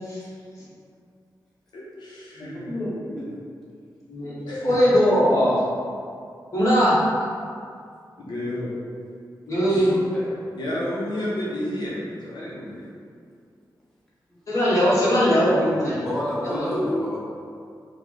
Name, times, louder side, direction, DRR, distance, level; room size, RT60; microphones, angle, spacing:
voice 1, 1.7-2.7 4.5-4.7 8.2-8.7 9.7-9.9 10.6-12.9, left 1 dB, 75° left, -7 dB, 0.6 m, -31 dB
voice 2, 2.4-3.3 4.1-5.6 6.5-7.0 9.5-9.9 14.5-16.0 16.4-17.0, equal, 45° left, -9 dB, 1.0 m, -21 dB
voice 3, 9.7-10.4 14.3-14.4 16.0-17.2, left 1 dB, 5° left, -9 dB, 0.6 m, -31 dB
3.2 x 2.0 x 3.7 m, 2.3 s
wide cardioid pair, 155°, 8 cm